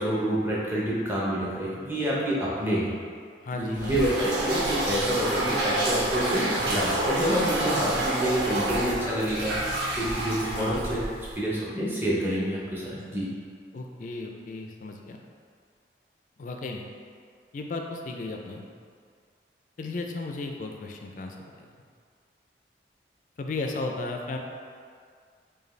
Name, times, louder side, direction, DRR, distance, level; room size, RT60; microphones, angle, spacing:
voice 1, 0.0-2.9 3.5-11.0 11.4-13.3, equal, 10° right, -7 dB, 0.7 m, -28 dB
voice 2, 3.4-4.0 10.5-10.8 13.7-15.2 16.4-16.8 17.5-18.7 19.8-21.7 23.4-24.4, left 3 dB, 45° left, 2 dB, 0.4 m, -34 dB
sound 1, 3.7-11.4, right 1 dB, 85° right, 0.7 m, -28 dB
5.1 x 2.3 x 3.2 m, 2.1 s
head